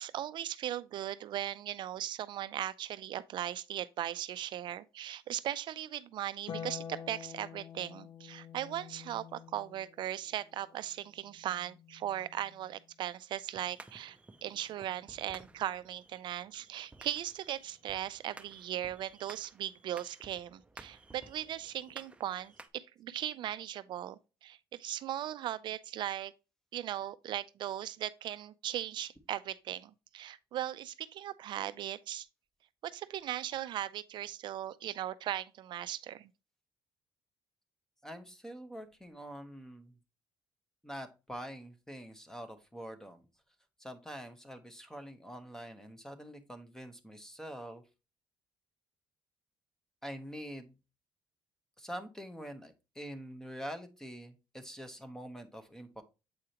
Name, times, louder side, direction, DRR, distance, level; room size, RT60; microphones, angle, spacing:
voice 1, 0.0-26.3 26.7-32.3 32.8-36.3, right 12 dB, 65° right, 0.4 m, -38 dB
Harp, 6.5-13.0 14.6-15.6, left 7 dB, 75° left, 0.6 m, -49 dB
sound 1, 13.5-22.7, right 2 dB, 15° right, 0.6 m, -55 dB
voice 2, 38.0-40.0 40.8-43.2 43.8-47.8 50.0-50.8 51.8-56.0, equal, 5° left, 1.0 m, -45 dB
7.7 x 4.8 x 2.9 m
cardioid pair, 110°, 9 cm